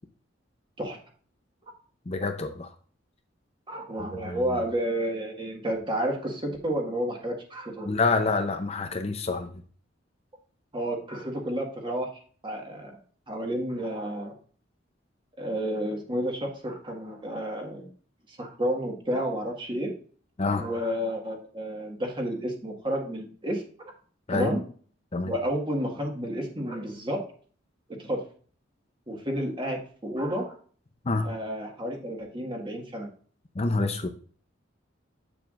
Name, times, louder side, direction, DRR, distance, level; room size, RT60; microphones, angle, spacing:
voice 1, 2.1-2.7 4.0-4.6 7.9-9.6 20.4-20.6 24.3-24.5 25.1-25.3 31.0-31.3 33.5-34.1, left 3 dB, 35° left, 6 dB, 0.6 m, -27 dB
voice 2, 3.7-7.9 10.7-12.1 12.4-12.9 13.3-14.3 15.4-17.9 18.3-19.9 20.5-23.9 24.3-24.6 25.2-27.2 28.0-28.2 29.1-30.6 31.2-33.1, equal, 25° right, 2 dB, 1.6 m, -31 dB
8.0 x 6.9 x 2.5 m, 0.44 s
head